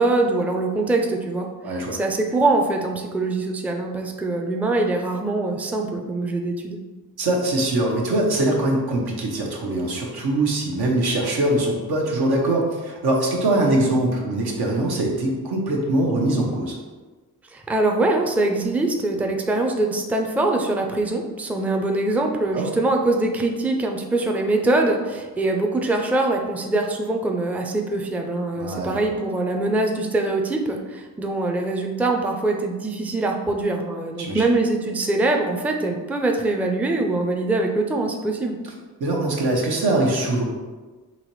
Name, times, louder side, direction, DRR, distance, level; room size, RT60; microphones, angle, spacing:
voice 1, 0.0-6.8 17.5-38.6, right 2 dB, 5° right, 2 dB, 0.4 m, -23 dB
voice 2, 1.6-2.0 7.2-16.8 22.5-22.7 28.6-29.0 34.2-34.4 39.0-40.4, right 1 dB, 75° right, -1 dB, 1.0 m, -22 dB
4.0 x 2.9 x 3.1 m, 1.3 s
cardioid pair, 55°, 38 cm